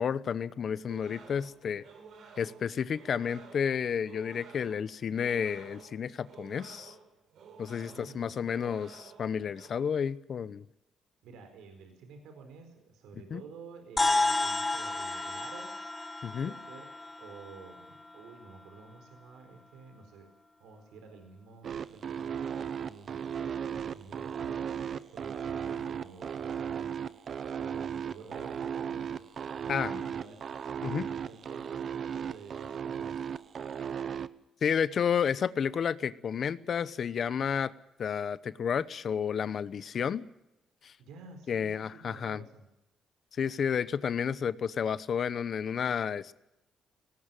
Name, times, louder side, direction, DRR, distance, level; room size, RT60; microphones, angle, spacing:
voice 1, 0.0-1.8 2.4-6.9 7.6-10.6 13.3-13.4 16.2-16.5 29.7-30.0 30.8-31.1 34.6-37.7 38.0-40.2 40.8-40.9 41.5-42.4 43.3-46.3, left 7 dB, 55° left, 16 dB, 0.9 m, -31 dB
sound 1, 0.9-9.7, right 5 dB, 70° right, 4.2 m, -52 dB
voice 2, 7.8-8.6 11.2-15.7 16.4-16.9 17.2-20.3 20.6-27.1 27.6-29.2 29.5-30.4 30.7-33.1 41.0-42.7, right 4 dB, 90° right, 6 dB, 4.5 m, -50 dB
sound 2, 14.0-18.6, left 2 dB, 20° left, 1.7 m, -32 dB
sound 3, 21.6-34.3, right 7 dB, 55° right, 0.9 m, -35 dB
19.0 x 17.5 x 9.1 m, 0.89 s
cardioid pair, 90°, 0 cm